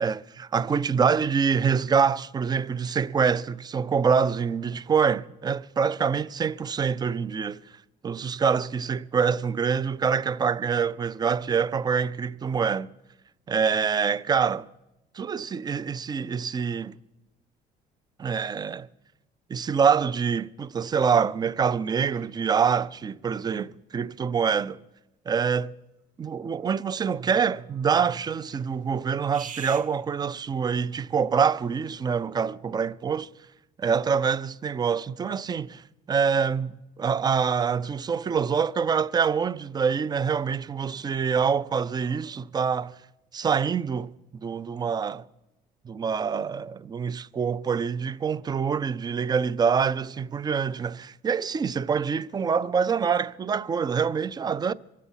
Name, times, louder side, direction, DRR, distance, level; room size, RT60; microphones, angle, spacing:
voice 1, 0.0-7.6 8.0-12.9 13.5-14.7 15.1-17.0 18.2-18.9 19.5-24.8 25.3-25.7 26.2-33.3 33.8-42.9 43.3-44.1 44.4-45.3 45.8-54.7, right 6 dB, 25° right, 0.4 m, -25 dB
sound 1, 21.8-22.6 25.4-25.5 26.0-26.1 26.3-29.0 29.3-30.2, right 7 dB, 50° right, 0.9 m, -47 dB
23.0 x 8.3 x 5.5 m
cardioid pair, 110°, 17 cm